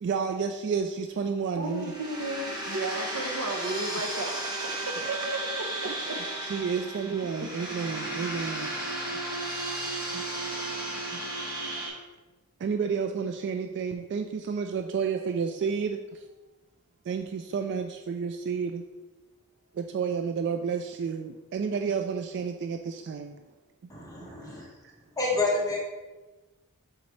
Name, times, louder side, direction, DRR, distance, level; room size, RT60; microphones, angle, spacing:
voice 1, 0.0-1.9 5.9-6.0 6.4-8.7 10.1-10.2 11.1-11.2 12.6-16.2 17.1-18.8 19.7-23.4 24.5-24.9, right 6 dB, 50° right, 5 dB, 0.3 m, -31 dB
sound 1, 1.6-11.9, right 1 dB, 20° right, 1.5 m, -34 dB
voice 2, 1.6-4.4 4.6-6.2 6.8-6.9, right 2 dB, 85° right, 3 dB, 0.9 m, -34 dB
voice 3, 23.9-24.7 25.2-25.8, left 2 dB, 15° left, -4 dB, 1.3 m, -28 dB
7.1 x 4.9 x 3.2 m, 1.2 s
head